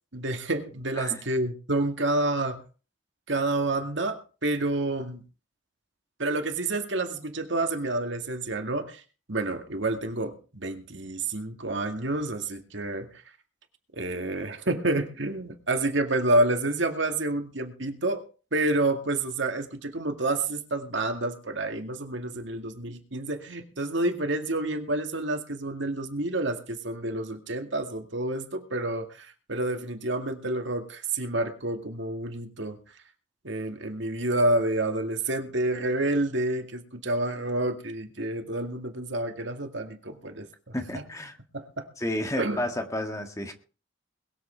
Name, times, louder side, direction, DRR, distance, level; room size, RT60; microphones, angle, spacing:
voice 1, 0.1-2.6 3.3-5.2 6.2-9.0 9.3-13.2 13.9-18.2 18.5-32.8 33.4-41.0 41.5-41.9 42.4-42.6, right 2 dB, 65° right, 5 dB, 2.2 m, -29 dB
voice 2, 40.7-41.3 42.0-43.5, left 1 dB, 15° left, 5 dB, 1.9 m, -31 dB
21.5 x 8.0 x 4.5 m, 0.36 s
head